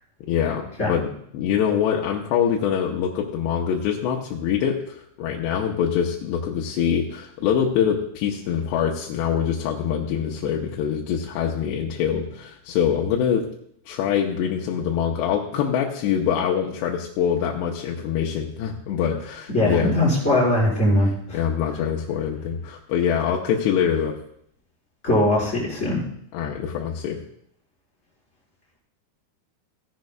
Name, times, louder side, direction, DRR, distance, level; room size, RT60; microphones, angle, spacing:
voice 1, 0.3-1.0 1.3-13.5 13.9-19.9 21.3-24.2 26.3-27.2, left 8 dB, 90° left, -1 dB, 2.9 m, -24 dB
voice 2, 19.5-21.4 25.0-26.0, left 1 dB, 15° left, -7 dB, 4.6 m, -21 dB
17.0 x 10.5 x 2.3 m, 0.70 s
omnidirectional pair, 4.8 m